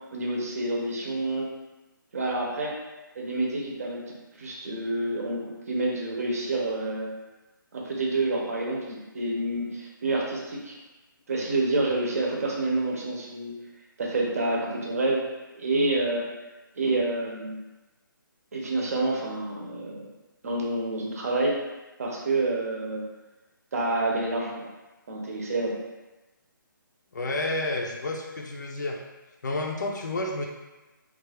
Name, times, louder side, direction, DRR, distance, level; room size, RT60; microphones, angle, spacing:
voice 1, 0.1-1.5 2.1-2.7 3.2-7.1 7.7-10.8 11.3-13.5 14.0-15.2 15.5-16.2 16.8-17.6 18.5-20.0 20.4-21.6 22.0-23.1 23.7-24.6 25.1-25.8, right 2 dB, 45° right, -2 dB, 0.7 m, -28 dB
voice 2, 27.1-29.0 29.4-30.5, left 2 dB, 55° left, 1 dB, 0.5 m, -30 dB
3.3 x 2.4 x 3.4 m, 1.1 s
hypercardioid pair, 170°, 11 cm